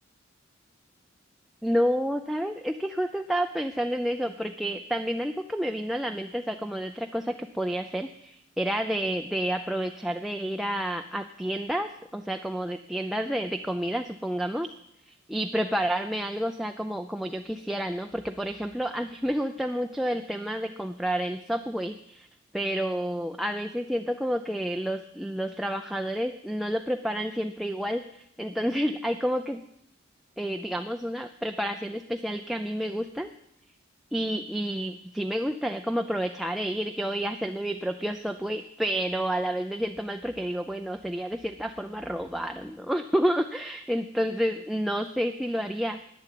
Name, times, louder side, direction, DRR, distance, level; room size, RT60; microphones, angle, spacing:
voice 1, 1.6-14.7 15.1-22.3 22.5-29.6 30.4-33.3 34.1-46.0, equal, ahead, 5 dB, 0.5 m, -30 dB
11.5 x 9.6 x 9.1 m, 0.77 s
head